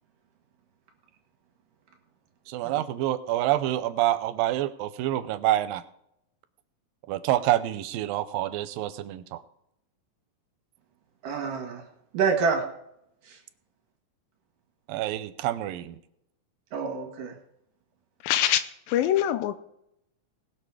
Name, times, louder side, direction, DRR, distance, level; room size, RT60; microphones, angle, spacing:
voice 1, 2.5-5.8 7.1-9.4 14.9-16.0, right 13 dB, 90° right, 13 dB, 2.4 m, -27 dB
voice 2, 11.2-11.8 12.1-12.6 13.3-13.4 16.7-17.4, right 5 dB, 70° right, 3 dB, 3.2 m, -27 dB
voice 3, 18.2-18.6 18.9-19.6, left 12 dB, 90° left, 11 dB, 2.4 m, -23 dB
20.0 x 6.8 x 4.8 m, 0.76 s
omnidirectional pair, 4.1 m